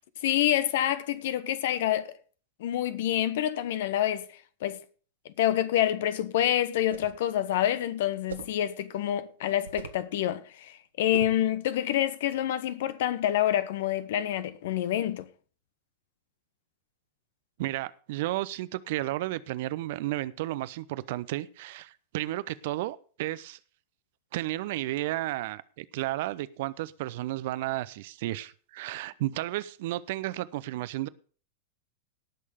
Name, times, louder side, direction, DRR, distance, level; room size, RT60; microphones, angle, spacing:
voice 1, 0.2-2.1 2.6-4.3 4.6-4.8 5.4-15.3, left 12 dB, 55° left, 1.1 m, -27 dB
sound 1, 6.8-7.2 8.3-8.6 9.6-10.1 11.1-11.5, right 7 dB, 70° right, 1.4 m, -41 dB
voice 2, 17.6-23.6 24.3-31.1, right 16 dB, 50° right, 0.7 m, -33 dB
18.0 x 6.5 x 5.0 m
figure-of-eight pair, 90°, 0 cm